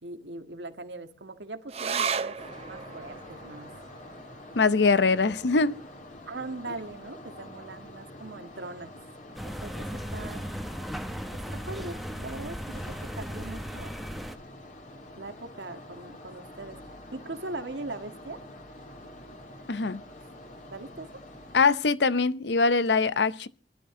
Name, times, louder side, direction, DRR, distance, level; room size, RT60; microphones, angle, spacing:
voice 1, 0.0-2.4 2.7-3.7 5.2-5.3 6.3-8.9 9.4-10.5 11.3-12.8 13.2-14.0 15.2-16.8 17.1-18.4 20.7-21.2, right 2 dB, 85° right, 1.8 m, -40 dB
sound 1, 1.7-8.5 8.8-8.9 9.2-9.9 10.5-10.6, right 6 dB, 35° right, 0.7 m, -38 dB
sound 2, 2.4-21.7, left 1 dB, 45° left, 2.8 m, -47 dB
voice 2, 4.5-5.7 19.7-20.0 21.5-23.5, left 4 dB, 75° left, 0.7 m, -23 dB
sound 3, 9.3-14.4, equal, ahead, 0.9 m, -37 dB
21.5 x 12.0 x 3.8 m
head